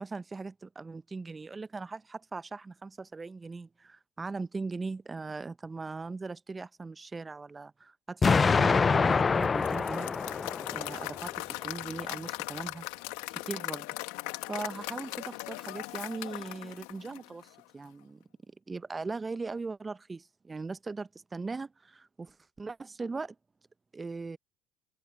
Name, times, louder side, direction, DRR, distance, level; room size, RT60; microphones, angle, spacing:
voice 1, 0.0-10.1 10.7-12.9 13.4-13.9 14.5-18.2 18.7-23.4 23.9-24.4, right 4 dB, 25° right, 0.8 m, -39 dB
Explosion, 8.2-11.2, left 5 dB, 30° left, 0.5 m, -25 dB
Applause / Crowd, 9.4-17.6, left 25 dB, 75° left, 1.8 m, -39 dB
open air
hypercardioid pair, 65°, 0 cm